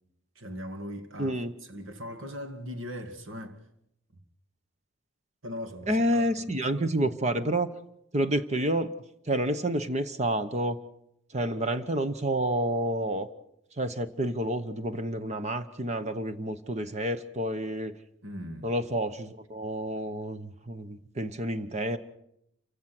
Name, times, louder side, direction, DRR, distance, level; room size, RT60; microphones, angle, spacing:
voice 1, 0.4-1.4 1.7-3.6 5.4-7.1 18.2-18.7, equal, 85° right, 2.2 m, -40 dB
voice 2, 1.2-1.5 5.9-7.7 8.1-8.9 9.3-10.8 11.3-13.3 13.8-17.9 18.6-22.0, right 1 dB, 35° right, 1.0 m, -29 dB
28.0 x 16.5 x 6.1 m
head